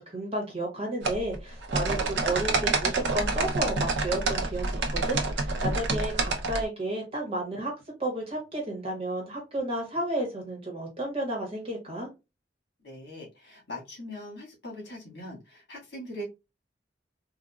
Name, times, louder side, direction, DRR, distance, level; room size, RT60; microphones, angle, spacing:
voice 1, 0.0-7.7 8.0-12.1, right 1 dB, 30° right, 0 dB, 1.4 m, -32 dB
sound 1, 1.0-6.6, right 3 dB, 75° right, 0.8 m, -28 dB
voice 2, 12.8-16.2, left 1 dB, 60° left, -2 dB, 1.9 m, -41 dB
3.9 x 2.5 x 2.3 m, 0.25 s
head